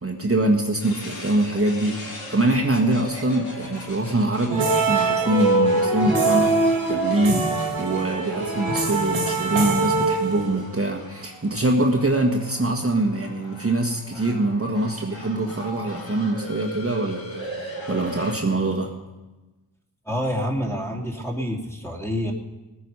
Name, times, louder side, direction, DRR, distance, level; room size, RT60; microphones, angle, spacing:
voice 1, 0.0-18.9, right 2 dB, 30° right, 1 dB, 1.6 m, -24 dB
sound 1, 0.8-18.3, left 1 dB, 70° left, 3.4 m, -39 dB
sound 2, 4.5-10.8, right 3 dB, 80° right, 2.3 m, -23 dB
voice 2, 20.0-22.3, equal, 5° left, 0 dB, 2.6 m, -27 dB
18.5 x 9.4 x 5.6 m, 1.1 s
cardioid pair, 60°, 46 cm